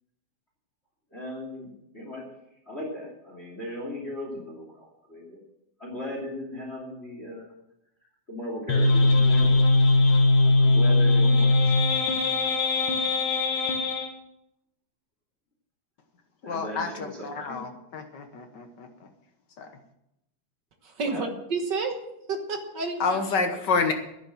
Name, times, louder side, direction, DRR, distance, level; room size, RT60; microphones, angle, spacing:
voice 1, 1.1-2.2 2.7-5.4 5.8-7.5 8.3-9.7 10.4-11.6 16.4-17.7 21.0-21.2, left 1 dB, 20° left, 0 dB, 2.9 m, -37 dB
sound 1, 8.7-14.1, left 2 dB, 70° left, 2.9 m, -20 dB
voice 2, 16.4-18.9 19.6-19.7 23.0-23.9, left 4 dB, 55° left, 5 dB, 1.2 m, -28 dB
voice 3, 20.8-22.0 22.3-23.6, right 4 dB, 50° right, 5 dB, 1.5 m, -31 dB
10.5 x 10.5 x 7.4 m, 0.81 s
omnidirectional pair, 3.4 m